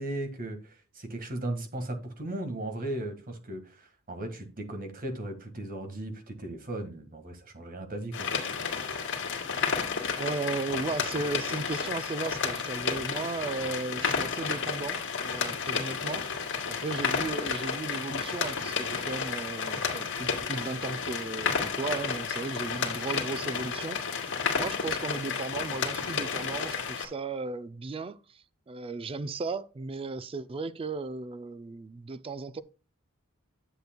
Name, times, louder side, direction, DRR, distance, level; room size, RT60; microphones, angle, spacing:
voice 1, 0.0-8.3, right 1 dB, 40° right, 1.6 m, -37 dB
sound 1, 8.1-27.1, left 6 dB, 60° left, 2.2 m, -31 dB
voice 2, 10.2-32.6, right 3 dB, 25° right, 0.4 m, -36 dB
10.5 x 8.0 x 2.2 m
head